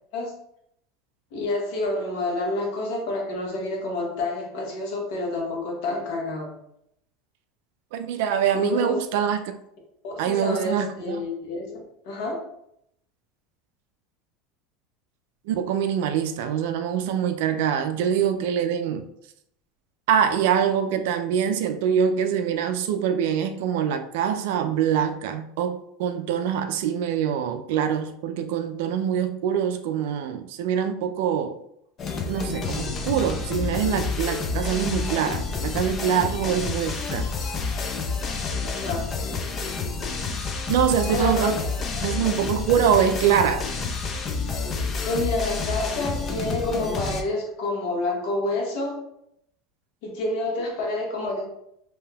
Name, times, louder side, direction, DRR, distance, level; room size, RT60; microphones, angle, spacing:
voice 1, 1.3-6.5 8.5-8.9 10.0-11.8 12.0-12.5 38.6-39.1 41.1-41.7 42.0-42.1 45.0-49.0 50.0-51.4, left 2 dB, 70° left, -1 dB, 1.0 m, -28 dB
voice 2, 7.9-9.5 10.2-11.2 15.5-19.0 20.1-31.6 32.3-37.3 40.7-41.5 42.0-43.6, right 8 dB, 75° right, 8 dB, 0.3 m, -24 dB
sound 1, 32.0-47.2, left 4 dB, 35° left, 0.5 m, -29 dB
2.7 x 2.2 x 3.3 m, 0.75 s
supercardioid pair, 125°, 0 cm